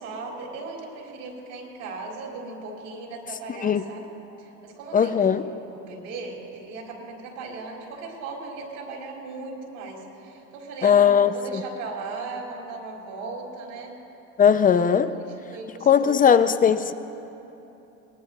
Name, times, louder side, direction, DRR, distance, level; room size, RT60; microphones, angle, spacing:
voice 1, 0.0-4.1 4.4-13.9 15.1-16.1 16.4-16.5, right 3 dB, 80° right, -2 dB, 3.6 m, -37 dB
voice 2, 3.5-3.9 4.9-5.4 10.8-11.6 14.4-15.2 15.8-16.9, left 7 dB, 25° left, 12 dB, 0.6 m, -19 dB
22.5 x 19.0 x 2.8 m, 3.0 s
supercardioid pair, 95°, 34 cm